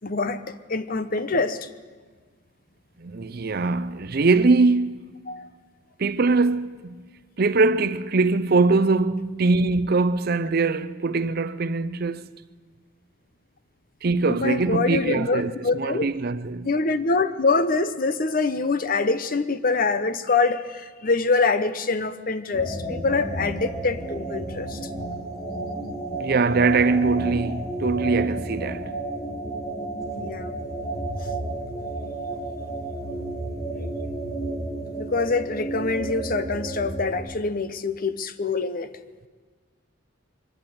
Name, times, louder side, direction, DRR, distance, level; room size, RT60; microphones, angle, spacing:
voice 1, 0.0-1.7 5.3-5.5 14.3-16.1 16.6-24.8 30.1-30.7 33.8-34.1 35.0-38.9, left 3 dB, 45° left, 0.9 m, -25 dB
voice 2, 3.0-5.2 6.0-7.1 7.4-12.3 14.0-16.7 26.1-28.9, right 3 dB, 50° right, 0.6 m, -22 dB
sound 1, 22.5-37.2, right 2 dB, 15° left, 3.3 m, -32 dB
23.5 x 12.0 x 9.3 m
head